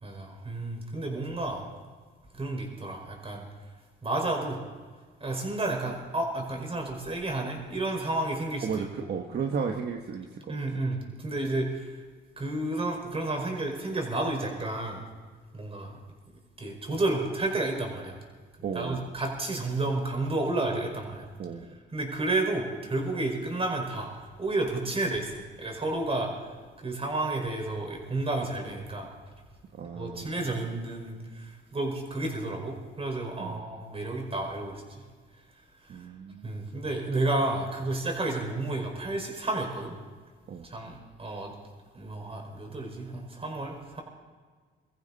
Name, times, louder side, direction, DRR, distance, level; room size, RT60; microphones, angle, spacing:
voice 1, 0.0-1.6 2.3-3.4 4.0-4.6 5.2-9.1 10.5-12.0 12.4-15.0 15.5-16.0 16.6-18.2 18.7-21.3 21.9-24.1 24.4-29.1 29.9-35.0 35.8-36.1 36.4-40.0 40.6-41.5 41.9-44.0, right 2 dB, 30° right, 1 dB, 5.2 m, -31 dB
voice 2, 8.6-10.6 18.6-19.0 21.4-21.7 29.7-30.4 33.4-33.6 35.9-36.5 40.5-40.7, right 6 dB, 55° right, 3 dB, 1.4 m, -34 dB
23.5 x 14.5 x 4.2 m, 1.5 s
cardioid pair, 90°, 20 cm